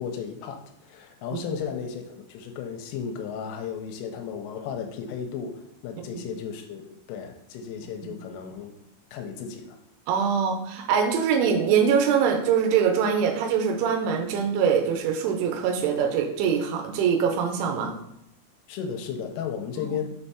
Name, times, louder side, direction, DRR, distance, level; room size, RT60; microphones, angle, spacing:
voice 1, 0.0-8.7 9.1-9.8 18.7-20.0, left 7 dB, 85° left, 5 dB, 3.1 m, -34 dB
voice 2, 10.1-18.0 19.9-20.0, right 7 dB, 85° right, 4 dB, 2.9 m, -23 dB
6.4 x 5.5 x 2.8 m, 0.76 s
omnidirectional pair, 5.8 m